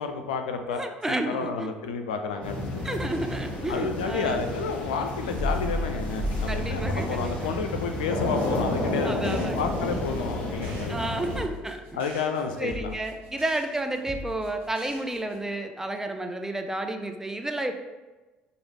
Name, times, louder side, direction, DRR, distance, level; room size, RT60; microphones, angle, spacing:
voice 1, 0.0-2.8 3.7-11.0 11.9-12.9, left 5 dB, 80° left, 6 dB, 0.4 m, -31 dB
voice 2, 0.7-1.7 2.8-4.4 6.5-7.6 9.0-9.6 10.9-12.0 12.6-17.7, right 2 dB, 10° right, 6 dB, 0.5 m, -31 dB
sound 1, 2.4-11.4, left 1 dB, 30° left, 1.5 m, -30 dB
sound 2, 9.2-15.4, left 1 dB, 55° right, 1.3 m, -42 dB
4.6 x 2.6 x 3.2 m, 1.2 s
hypercardioid pair, 60°, 4 cm